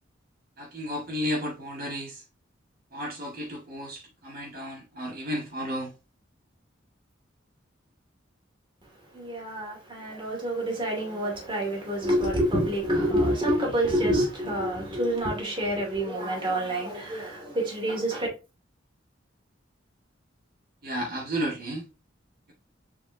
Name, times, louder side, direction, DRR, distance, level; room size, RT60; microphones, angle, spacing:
voice 1, 0.6-2.2 2.9-5.9 20.8-21.8, equal, 50° right, 2.0 m, -33 dB
voice 2, 9.1-18.3, right 1 dB, 25° right, 2.6 m, -27 dB
6.6 x 5.1 x 2.9 m
head